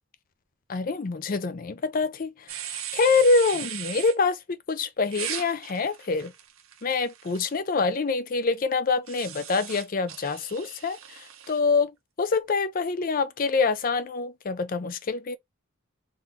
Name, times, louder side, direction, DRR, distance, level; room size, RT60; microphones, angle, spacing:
voice 1, 0.7-6.3 6.8-15.4, left 4 dB, 40° left, 0.5 m, -26 dB
sound 1, 2.5-4.1 5.1-7.6 9.1-11.6, right 10 dB, 85° right, 0.8 m, -38 dB
3.8 x 3.0 x 3.5 m
head